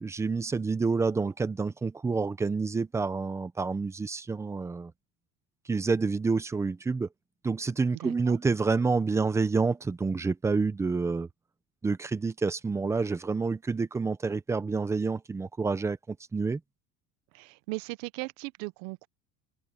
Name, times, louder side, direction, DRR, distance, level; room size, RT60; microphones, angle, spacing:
voice 1, 0.0-4.9 5.7-7.1 7.4-11.3 11.8-16.6, right 4 dB, 10° right, 0.5 m, -28 dB
voice 2, 8.0-8.4 17.3-19.1, right 25 dB, 80° right, 0.7 m, -38 dB
cardioid pair, 170°, 33 cm